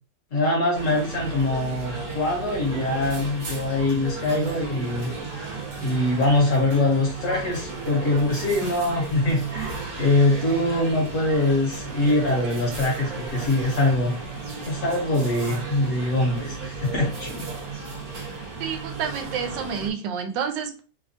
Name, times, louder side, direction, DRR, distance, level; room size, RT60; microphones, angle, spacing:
voice 1, 0.3-14.2 14.6-17.5, left 2 dB, 55° left, 0 dB, 1.0 m, -23 dB
sound 1, 0.7-19.9, right 4 dB, 60° right, 1.2 m, -34 dB
voice 2, 18.6-20.8, right 7 dB, 85° right, 6 dB, 1.3 m, -29 dB
3.2 x 2.1 x 2.5 m, 0.34 s
omnidirectional pair, 1.9 m